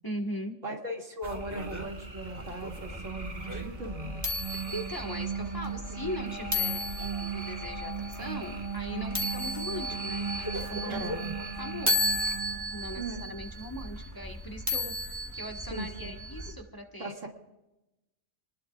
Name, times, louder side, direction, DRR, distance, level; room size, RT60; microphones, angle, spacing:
voice 1, 0.0-0.6 4.5-6.8 7.3-11.3 11.6-12.0 12.7-17.1, equal, 15° left, 2 dB, 1.6 m, -39 dB
voice 2, 0.6-4.2 8.2-8.3 10.9-11.4 13.0-13.3 15.7-16.1 17.0-17.3, right 1 dB, 90° right, 0 dB, 2.8 m, -38 dB
sound 1, 1.2-16.5, left 1 dB, 15° right, 1.9 m, -35 dB
sound 2, 1.3-12.3, right 2 dB, 45° right, 1.9 m, -48 dB
sound 3, 2.6-13.1, right 5 dB, 70° right, 2.5 m, -38 dB
28.5 x 19.5 x 2.5 m, 0.98 s
omnidirectional pair, 1.3 m